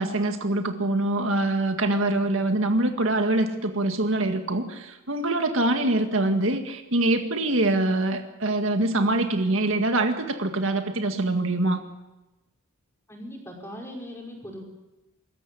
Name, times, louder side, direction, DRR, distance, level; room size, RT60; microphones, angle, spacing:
voice 1, 0.0-11.8, right 2 dB, 65° right, 5 dB, 2.0 m, -24 dB
voice 2, 13.1-14.6, equal, 10° left, 0 dB, 5.2 m, -39 dB
24.5 x 14.5 x 10.0 m, 1.0 s
head